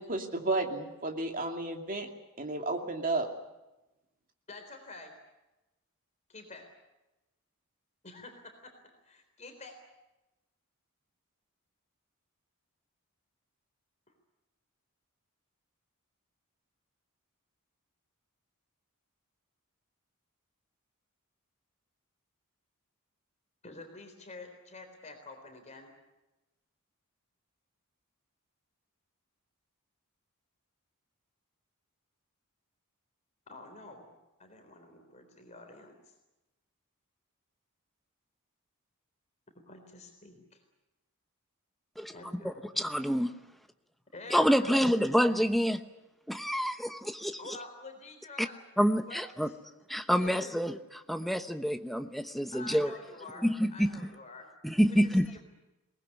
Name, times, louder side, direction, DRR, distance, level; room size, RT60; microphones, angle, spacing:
voice 1, 0.0-2.1 2.4-3.3, right 2 dB, 40° right, 3 dB, 2.6 m, -32 dB
voice 2, 4.5-5.1 6.3-6.7 8.0-8.7 9.0-9.7 23.6-25.9 33.5-34.1 34.4-36.1 39.7-40.6 42.1-42.6 44.1-44.9 47.4-48.6 49.0-49.6 50.2-50.6 52.5-54.5 54.9-55.4, left 2 dB, 30° left, 4 dB, 3.7 m, -48 dB
voice 3, 42.0-43.3 44.3-45.8 46.3-47.4 48.4-48.5 48.8-49.5 49.9-50.8 51.1-52.9 53.4-54.1 54.6-55.3, equal, ahead, 8 dB, 0.9 m, -27 dB
22.0 x 19.5 x 9.6 m, 1.0 s
head